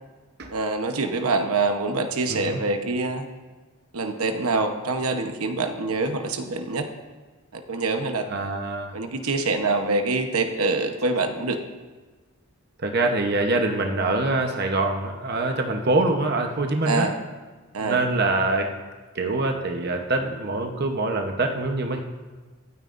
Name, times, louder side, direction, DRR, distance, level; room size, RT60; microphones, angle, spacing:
voice 1, 0.5-3.3 3.9-6.9 7.5-8.3 8.9-11.6 16.8-17.2 17.7-18.0, right 3 dB, 85° right, 5 dB, 1.0 m, -25 dB
voice 2, 8.3-8.9 12.8-17.1 17.8-18.7 19.1-22.0, right 2 dB, 50° right, 3 dB, 0.9 m, -24 dB
25.0 x 9.1 x 2.6 m, 1.3 s
head